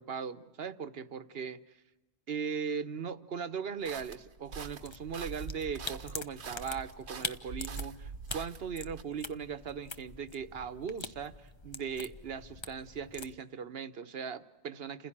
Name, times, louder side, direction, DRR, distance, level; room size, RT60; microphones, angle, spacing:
voice 1, 0.0-1.6 2.3-15.1, right 6 dB, 65° right, 13 dB, 1.2 m, -39 dB
sound 1, 3.8-9.0, right 5 dB, 90° right, 1.3 m, -44 dB
sound 2, 4.6-13.4, left 3 dB, 30° left, 0.9 m, -45 dB
29.5 x 16.0 x 8.7 m, 1.1 s
omnidirectional pair, 1.1 m